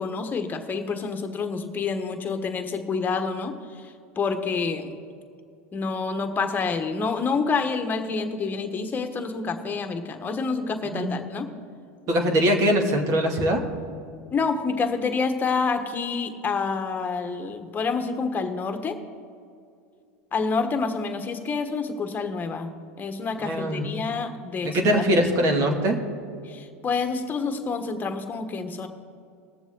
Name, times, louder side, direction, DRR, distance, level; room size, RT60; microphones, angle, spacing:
voice 1, 0.0-5.0 5.7-11.5 14.3-19.0 20.3-25.3 26.4-28.9, left 4 dB, 25° left, 6 dB, 1.4 m, -28 dB
voice 2, 12.1-13.6 23.4-23.9 24.6-26.0, equal, 50° right, 3 dB, 2.2 m, -22 dB
20.5 x 7.1 x 3.8 m, 2.4 s
hypercardioid pair, 105°, 7 cm